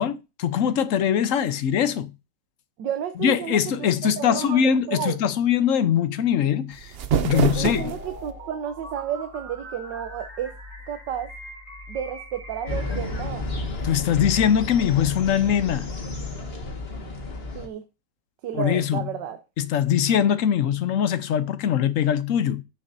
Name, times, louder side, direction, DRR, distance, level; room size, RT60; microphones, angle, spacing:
voice 1, 0.0-2.1 3.2-6.9 7.2-7.9 13.8-15.9 18.5-19.0 19.6-22.6, left 9 dB, 60° left, 1.0 m, -22 dB
voice 2, 2.8-4.6 4.9-5.2 7.3-10.5 10.9-11.3 11.9-13.5 17.5-17.8 18.4-19.4, right 9 dB, 85° right, 1.5 m, -31 dB
sound 1, 6.7-8.3, right 7 dB, 60° right, 0.6 m, -26 dB
sound 2, 7.8-13.2, equal, 45° right, 3.8 m, -42 dB
sound 3, 12.7-17.7, left 2 dB, 35° left, 1.8 m, -32 dB
13.5 x 6.9 x 2.6 m
omnidirectional pair, 1.9 m